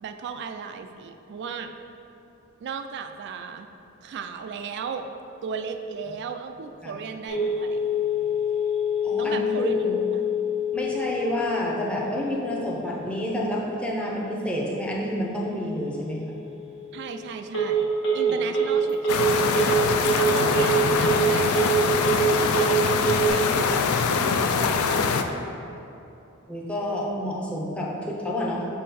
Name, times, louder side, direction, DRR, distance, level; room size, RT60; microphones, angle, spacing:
voice 1, 0.0-1.7 2.6-3.7 4.0-5.1 5.4-7.9 9.2-9.8 16.9-17.9 18.1-21.9 22.4-25.1, right 6 dB, 55° right, 7 dB, 0.3 m, -36 dB
Telephone, 7.3-23.3, right 2 dB, 65° left, 1.4 m, -26 dB
voice 2, 9.0-10.0 10.7-16.3 26.5-28.6, equal, 5° left, -4 dB, 0.7 m, -29 dB
sound 1, 19.1-25.2, left 5 dB, 80° left, 0.4 m, -23 dB
6.0 x 3.7 x 4.2 m, 2.8 s
head